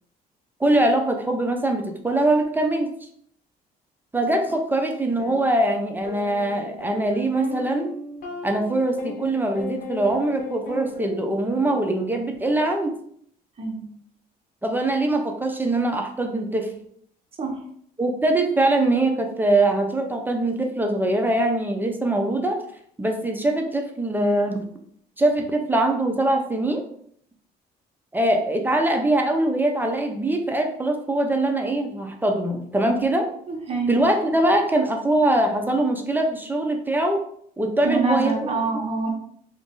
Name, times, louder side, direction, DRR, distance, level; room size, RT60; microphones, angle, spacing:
voice 1, 0.6-2.9 4.1-7.9 8.4-12.9 14.6-16.7 18.0-22.6 23.0-24.6 25.2-26.8 28.1-33.3 33.9-37.2 37.6-38.4, right 1 dB, 10° right, 3 dB, 0.5 m, -22 dB
sound 1, 5.2-5.4 6.0-12.4, left 3 dB, 55° left, 1.1 m, -37 dB
voice 2, 33.5-34.1 37.8-39.1, right 3 dB, 35° right, 0 dB, 1.0 m, -25 dB
2.9 x 2.6 x 3.7 m, 0.65 s
cardioid pair, 110°, 17 cm